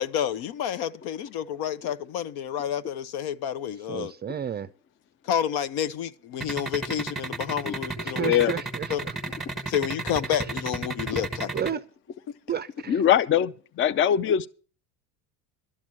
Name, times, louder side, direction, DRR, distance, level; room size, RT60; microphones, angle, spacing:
voice 1, 0.0-4.1 5.2-8.3 8.9-9.0 9.7-11.5, left 9 dB, 60° left, 0.9 m, -29 dB
voice 2, 3.9-4.7 8.0-9.1 11.5-11.8 12.5-13.0, right 8 dB, 25° right, 0.5 m, -32 dB
sound 1, 6.4-11.7, right 3 dB, ahead, 1.5 m, -32 dB
voice 3, 8.1-8.5 12.9-14.5, left 9 dB, 30° left, 0.5 m, -22 dB
12.5 x 6.0 x 8.4 m
supercardioid pair, 100°, 42 cm